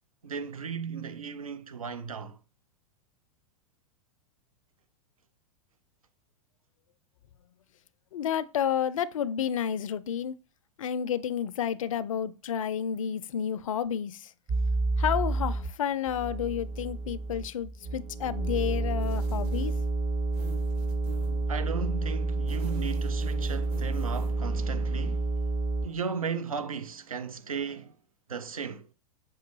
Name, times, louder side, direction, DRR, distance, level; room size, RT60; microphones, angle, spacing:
voice 1, 0.2-2.4 21.5-25.3 25.8-27.9 28.3-28.9, right 6 dB, 85° right, 0.5 m, -35 dB
voice 2, 8.1-10.3 10.8-14.3 15.0-19.7, left 9 dB, 70° left, 0.4 m, -30 dB
sound 1, 14.5-15.7 16.1-25.9, right 2 dB, 30° right, 0.7 m, -29 dB
sound 2, 19.0-20.0 20.3-21.5 22.3-24.4, right 2 dB, 50° right, 2.2 m, -48 dB
6.0 x 2.2 x 3.0 m
figure-of-eight pair, 95°, 18 cm